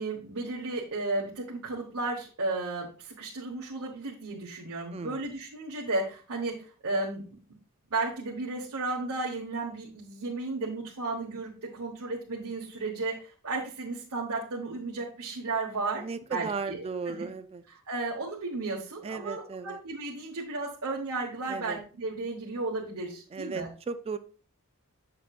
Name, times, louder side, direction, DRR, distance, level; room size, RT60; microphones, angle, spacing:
voice 1, 0.0-7.4 7.9-16.0 16.3-17.3 17.9-23.7, right 3 dB, 75° right, -3 dB, 1.3 m, -34 dB
voice 2, 4.9-5.3 16.0-17.6 19.0-19.8 21.5-21.8 23.3-24.2, right 4 dB, 25° right, 11 dB, 0.3 m, -36 dB
8.0 x 6.5 x 2.5 m, 0.38 s
head